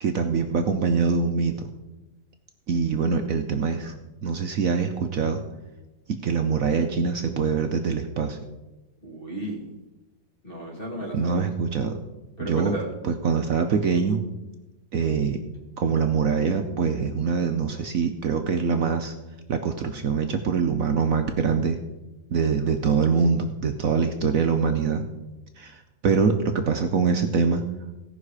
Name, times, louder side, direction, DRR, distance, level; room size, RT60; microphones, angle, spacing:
voice 1, 0.0-1.7 2.7-4.0 4.2-5.4 6.1-8.4 11.1-12.0 12.4-12.7 13.0-14.2 14.9-15.4 15.8-19.1 19.5-21.8 22.3-25.0 25.6-27.6, right 5 dB, 60° right, 6 dB, 0.9 m, -24 dB
voice 2, 9.0-9.8 10.4-11.4 12.4-12.9, right 1 dB, 25° left, -1 dB, 2.6 m, -33 dB
16.5 x 5.8 x 4.8 m, 1.0 s
omnidirectional pair, 2.1 m